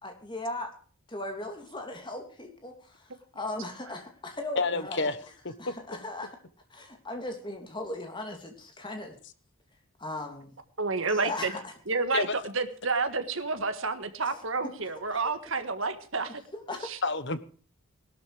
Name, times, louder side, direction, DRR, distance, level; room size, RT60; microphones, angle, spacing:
voice 1, 0.0-0.7 1.1-5.1 5.6-6.4 6.7-9.2 10.0-10.5 11.1-11.7 14.3-14.4 14.9-15.0 16.5-16.9, left 2 dB, 20° left, 4 dB, 2.8 m, -38 dB
voice 2, 4.6-5.2 5.4-5.7 12.1-12.3 17.0-17.4, left 3 dB, 55° left, 13 dB, 1.2 m, -28 dB
voice 3, 10.8-11.5 11.9-12.3 12.5-16.4 16.8-17.0, right 4 dB, 65° right, 9 dB, 1.7 m, -30 dB
18.0 x 12.0 x 5.0 m, 0.41 s
head